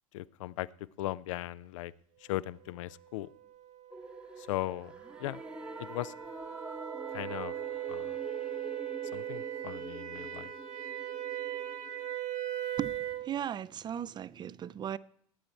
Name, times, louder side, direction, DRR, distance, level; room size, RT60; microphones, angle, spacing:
voice 1, 0.1-0.7 1.0-1.9 2.3-3.3 4.4-4.9 5.2-5.4 5.8-6.1 7.1-7.5 7.9-8.1 9.1-10.5, left 16 dB, 65° left, 0.5 m, -37 dB
sound 1, 3.4-13.3, right 12 dB, 45° right, 1.3 m, -39 dB
sound 2, 3.9-12.1, right 1 dB, 5° right, 0.9 m, -46 dB
voice 2, 12.8-15.0, right 9 dB, 25° right, 0.4 m, -37 dB
17.5 x 8.8 x 4.4 m
figure-of-eight pair, 75°, 18 cm